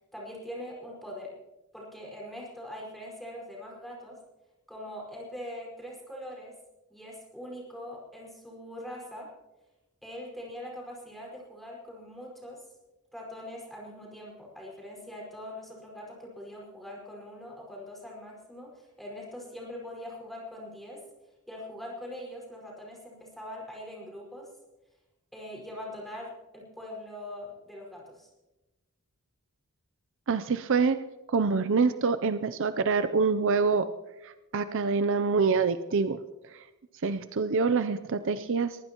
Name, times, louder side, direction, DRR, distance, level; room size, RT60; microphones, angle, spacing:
voice 1, 0.1-1.3 1.7-4.2 4.7-6.5 6.9-9.3 10.0-12.6 13.1-21.0 21.5-24.5 25.3-28.3, left 1 dB, ahead, -3 dB, 5.1 m, -42 dB
voice 2, 30.3-31.0 31.3-33.9 34.2-36.2 36.5-36.6 37.0-38.8, right 4 dB, 60° right, 12 dB, 0.5 m, -26 dB
22.5 x 15.5 x 3.0 m, 1.0 s
head